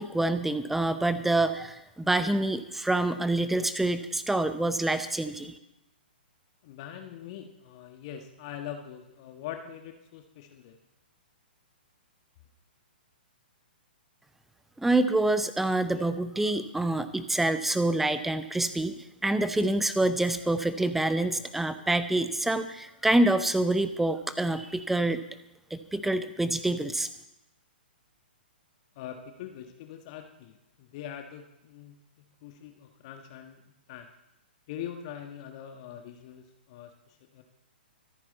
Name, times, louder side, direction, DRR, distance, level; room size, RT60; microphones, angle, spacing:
voice 1, 0.0-5.6 14.8-25.2 25.7-27.1, right 2 dB, 5° right, 12 dB, 0.8 m, -26 dB
voice 2, 6.6-10.8 28.9-33.6 33.9-34.1 34.7-37.4, left 9 dB, 40° left, 5 dB, 1.3 m, -43 dB
25.0 x 9.9 x 4.1 m, 0.87 s
figure-of-eight pair, 115°, 5 cm